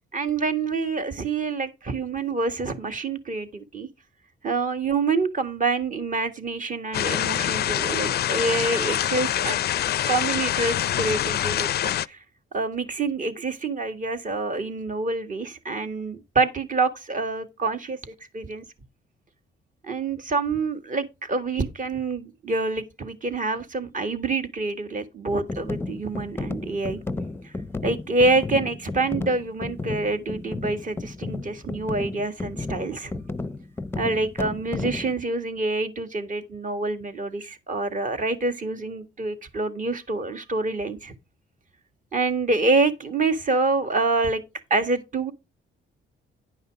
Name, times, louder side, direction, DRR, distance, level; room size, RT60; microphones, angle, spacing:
voice 1, 0.1-3.9 4.4-9.6 10.1-12.2 12.5-18.6 19.8-27.0 27.4-27.5 27.8-33.1 34.0-41.1 42.1-44.4 44.7-45.3, right 3 dB, 40° right, 1.8 m, -26 dB
Rain loop, 6.9-12.1, left 12 dB, 55° left, 0.4 m, -25 dB
sound 1, 25.5-35.1, left 3 dB, 10° left, 0.6 m, -33 dB
10.5 x 5.5 x 4.7 m
cardioid pair, 90°, 20 cm